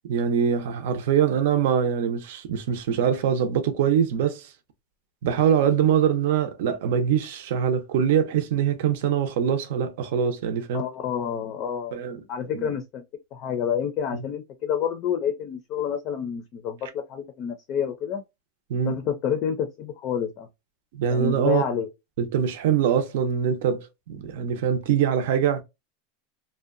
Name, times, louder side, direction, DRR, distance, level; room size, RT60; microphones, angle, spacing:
voice 1, 0.0-4.5 5.2-10.8 11.9-12.2 12.5-12.7 14.1-14.2 18.7-19.0 20.9-21.6 22.2-25.6, right 8 dB, 70° right, 0.6 m, -23 dB
voice 2, 10.7-12.0 12.3-13.0 13.3-18.2 18.9-20.5 21.1-21.9, left 8 dB, 35° left, 0.4 m, -28 dB
2.7 x 2.1 x 2.4 m
supercardioid pair, 165°, 0 cm